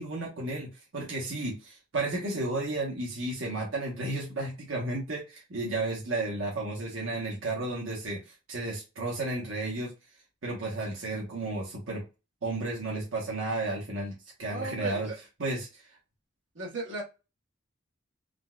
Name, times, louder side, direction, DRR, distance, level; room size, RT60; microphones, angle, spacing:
voice 1, 0.0-9.9 10.4-12.0 12.4-15.1 15.4-15.8, right 2 dB, 85° right, -3 dB, 0.9 m, -33 dB
voice 2, 14.4-15.2 16.5-17.0, right 2 dB, 65° right, -2 dB, 1.1 m, -36 dB
3.8 x 2.2 x 2.3 m, 0.28 s
head